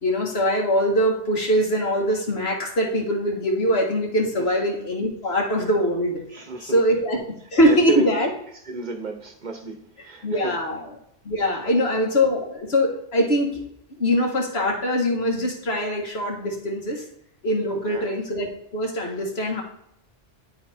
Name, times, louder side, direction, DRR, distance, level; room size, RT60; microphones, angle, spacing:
voice 1, 0.0-6.2 6.6-7.2 7.5-8.3 10.2-10.9 11.3-13.6 14.0-17.0 17.4-18.5 18.7-19.6, equal, 65° left, 1 dB, 1.8 m, -22 dB
voice 2, 6.3-6.8 7.6-8.1 8.6-10.6 11.6-12.0 17.7-18.1, right 3 dB, 45° right, 6 dB, 0.9 m, -32 dB
10.5 x 4.2 x 4.2 m, 0.75 s
omnidirectional pair, 1.1 m